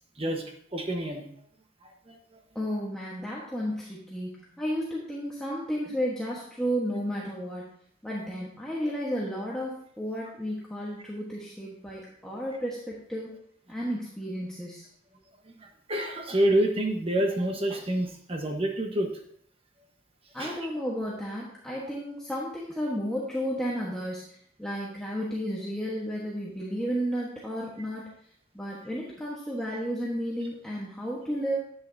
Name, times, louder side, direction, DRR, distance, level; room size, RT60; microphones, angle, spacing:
voice 1, 0.2-1.3 1.8-2.4 15.6-19.1 20.4-20.6, right 1 dB, 30° right, 3 dB, 1.2 m, -28 dB
voice 2, 2.5-7.7 8.0-13.3 13.7-14.9 20.3-28.1 28.5-31.6, equal, 5° left, -6 dB, 1.2 m, -33 dB
10.5 x 8.6 x 2.7 m, 0.64 s
head